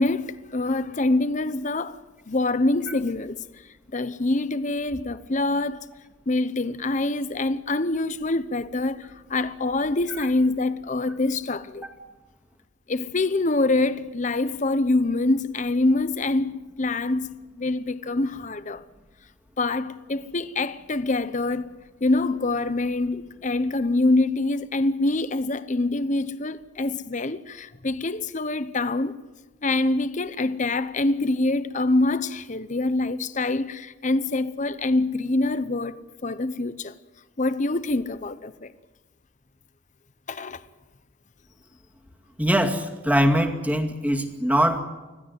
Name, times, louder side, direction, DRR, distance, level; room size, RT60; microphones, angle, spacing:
voice 1, 0.0-2.0 2.3-3.4 3.9-5.9 6.3-11.8 12.9-18.8 19.6-21.7 22.0-29.2 29.6-36.9 37.4-38.7 40.3-40.6, left 2 dB, 40° left, 0.9 m, -25 dB
voice 2, 42.4-44.8, equal, 10° right, 2.3 m, -22 dB
25.5 x 16.0 x 9.6 m
head